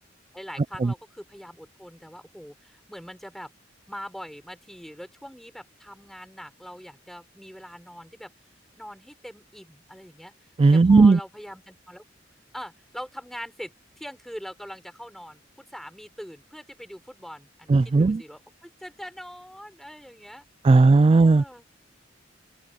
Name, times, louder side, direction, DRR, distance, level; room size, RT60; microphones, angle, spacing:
voice 1, 0.3-3.5 3.9-8.3 8.8-10.3 10.7-12.0 12.5-21.7, equal, ahead, 6.7 m, -42 dB
voice 2, 10.6-11.2 17.7-18.2 20.6-21.4, right 3 dB, 30° right, 0.3 m, -16 dB
open air
head